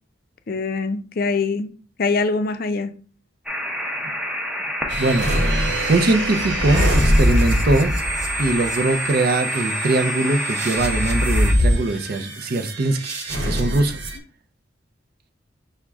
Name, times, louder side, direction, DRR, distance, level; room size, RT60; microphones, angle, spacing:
voice 1, 0.5-1.7 2.0-2.9, left 4 dB, 50° left, 0.4 m, -23 dB
sound 1, 3.5-11.5, equal, 5° right, 0.6 m, -28 dB
voice 2, 4.9-5.3 5.6-7.9 8.4-13.1 13.5-14.0, right 2 dB, 55° right, 0.5 m, -21 dB
sound 2, 4.9-14.2, equal, 80° right, 1.0 m, -23 dB
6.0 x 2.1 x 3.5 m
head